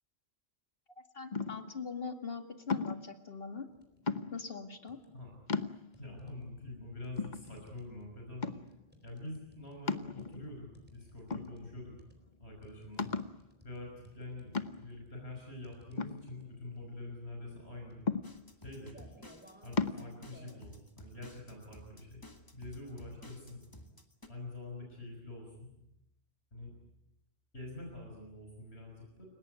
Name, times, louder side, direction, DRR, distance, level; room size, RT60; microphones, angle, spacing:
voice 1, 1.1-3.7 4.3-5.0, left 5 dB, 65° left, 7 dB, 2.3 m, -41 dB
sound 1, 1.3-1.8 2.7-3.1 4.1-4.6 5.1-5.2 5.5-6.1 6.7-6.8 7.2-7.9 8.4-8.8 9.9-10.6 11.3-11.9 12.3-12.4 13.0-13.4 14.5-15.0 16.0-16.9 18.1-18.7 19.8-20.0, left 4 dB, 45° left, 1.2 m, -35 dB
sound 2, 3.7-4.1 4.5-5.4 5.9-20.6, equal, 10° right, 4.3 m, -61 dB
voice 2, 6.0-8.5 9.0-12.0 12.4-13.1 13.6-18.0 18.6-19.0 19.6-22.2 22.5-23.6 24.3-25.7 26.5-26.7 27.5-29.3, left 2 dB, 90° left, 0 dB, 6.3 m, -46 dB
sound 3, 18.2-24.3, left 1 dB, 20° left, 2.3 m, -54 dB
30.0 x 18.0 x 9.5 m, 0.85 s
omnidirectional pair, 1.1 m